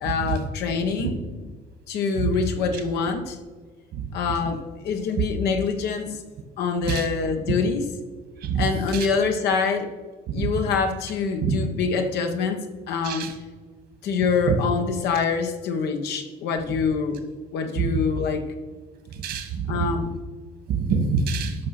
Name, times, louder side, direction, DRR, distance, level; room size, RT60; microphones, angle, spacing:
voice 1, 0.0-1.5 1.9-3.4 4.1-6.2 6.6-7.9 8.5-9.9 10.3-13.3 14.0-17.2 17.5-18.5 19.7-20.1, left 5 dB, 80° left, 5 dB, 1.4 m, -25 dB
voice 2, 19.2-19.6 20.7-21.5, right 5 dB, 75° right, 6 dB, 2.2 m, -25 dB
12.0 x 5.9 x 6.0 m, 1.4 s
cardioid pair, 110°, 17 cm